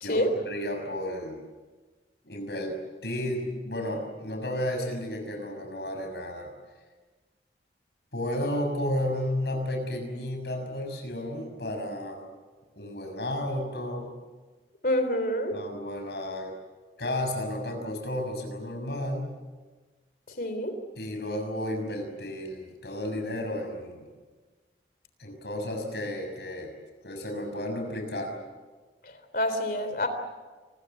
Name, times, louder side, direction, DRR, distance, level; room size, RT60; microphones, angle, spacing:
voice 1, 0.0-1.4 2.2-2.8 3.0-6.5 8.1-12.3 12.7-14.1 15.5-16.5 17.0-19.3 21.0-24.1 25.2-26.7 27.0-28.3, left 1 dB, 70° left, 4 dB, 6.4 m, -32 dB
voice 2, 14.8-15.6 20.4-20.7 29.0-30.1, left 1 dB, 55° left, 8 dB, 3.5 m, -27 dB
28.0 x 21.5 x 7.9 m, 1.3 s
head